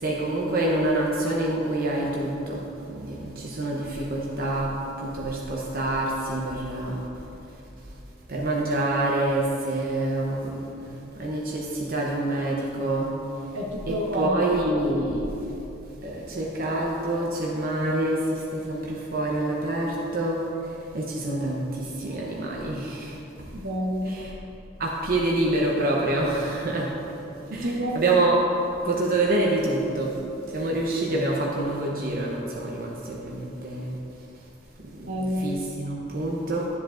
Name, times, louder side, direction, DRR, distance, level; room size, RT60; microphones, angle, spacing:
voice 1, 0.0-4.7 5.0-7.0 8.3-10.5 11.2-13.1 13.9-15.3 16.0-20.4 20.9-23.1 24.0-24.3 24.8-26.9 27.5-28.4 28.8-30.1 30.5-33.9 35.4-36.7, right 2 dB, 50° right, -3 dB, 0.8 m, -26 dB
voice 2, 13.5-14.4 23.6-24.2 27.5-28.0 35.1-35.5, equal, 75° right, -1 dB, 1.2 m, -28 dB
12.0 x 7.5 x 2.5 m, 3.0 s
head